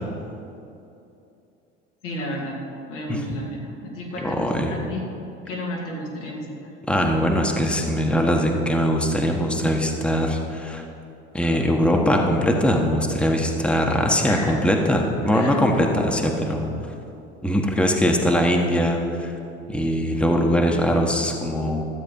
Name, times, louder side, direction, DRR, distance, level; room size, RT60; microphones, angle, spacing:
voice 1, 2.0-2.6 2.9-5.0 5.4-6.7 14.3-14.5 15.2-15.6, left 1 dB, 85° left, -4 dB, 2.6 m, -32 dB
voice 2, 4.2-4.7 6.9-10.8 11.3-16.7 17.4-19.3 19.7-21.8, equal, 5° left, 1 dB, 1.3 m, -21 dB
13.0 x 7.5 x 5.4 m, 2.8 s
hypercardioid pair, 75°, 35 cm